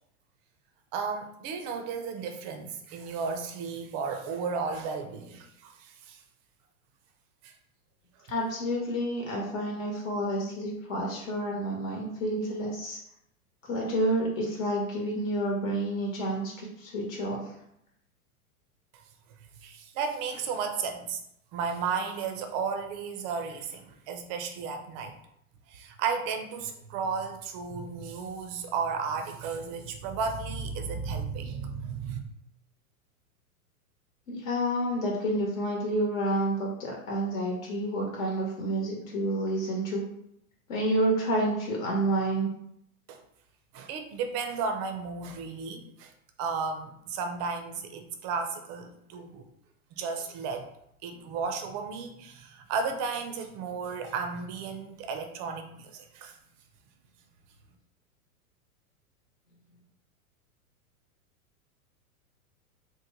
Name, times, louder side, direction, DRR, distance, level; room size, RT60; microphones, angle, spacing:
voice 1, 0.9-6.2 7.4-7.5 18.9-19.0 19.6-21.2 21.5-25.1 25.7-32.2 43.1-43.2 43.7-46.1 46.4-49.5 49.9-50.7 51.0-56.4, right 5 dB, 30° right, 6 dB, 0.4 m, -34 dB
voice 2, 8.3-13.0 13.6-17.4 34.3-40.0 40.7-42.5, right 1 dB, 65° left, -2 dB, 1.1 m, -29 dB
3.0 x 2.1 x 3.8 m, 0.74 s
hypercardioid pair, 110°, 44 cm